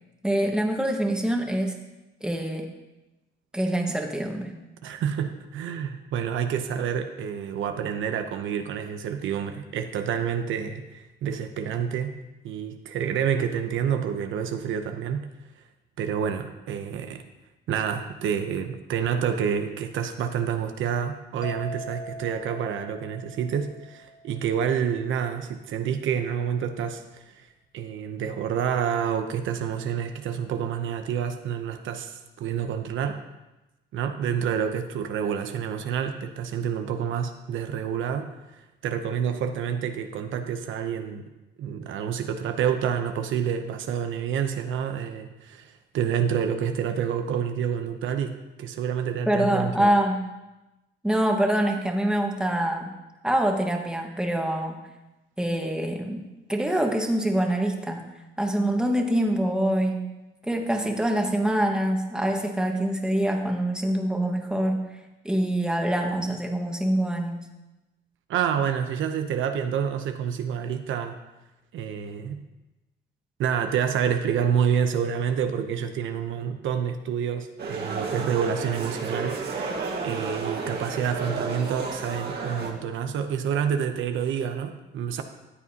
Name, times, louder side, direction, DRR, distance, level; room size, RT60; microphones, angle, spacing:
voice 1, 0.2-1.8 2.2-2.7 3.5-4.5 49.2-50.2 51.0-52.9 53.2-54.8 55.4-58.0 58.4-60.1 60.4-64.8 65.2-67.5, right 1 dB, 5° right, 2 dB, 1.5 m, -25 dB
voice 2, 4.8-12.1 12.4-15.3 16.0-17.2 17.7-27.5 27.7-33.2 33.9-38.3 38.8-41.2 41.6-49.9 68.3-71.2 71.7-72.4 73.4-79.4 79.6-79.7 80.0-85.2, right 8 dB, 80° right, 7 dB, 0.7 m, -28 dB
sound 1, 21.4-25.0, equal, 40° left, 1.1 m, -42 dB
sound 2, 77.6-82.7, right 4 dB, 55° right, 1.7 m, -32 dB
13.5 x 8.2 x 2.8 m, 1.0 s
cardioid pair, 90°, 20 cm